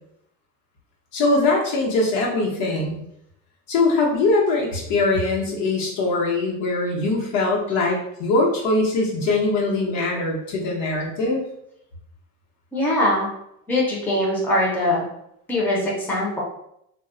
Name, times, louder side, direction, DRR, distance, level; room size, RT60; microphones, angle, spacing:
voice 1, 1.1-3.0 3.7-11.4, left 2 dB, 75° left, -2 dB, 0.9 m, -22 dB
voice 2, 12.7-13.3 13.7-15.0 15.5-16.4, left 1 dB, 5° left, -5 dB, 0.5 m, -22 dB
2.2 x 2.1 x 3.6 m, 0.76 s
cardioid pair, 170°, 31 cm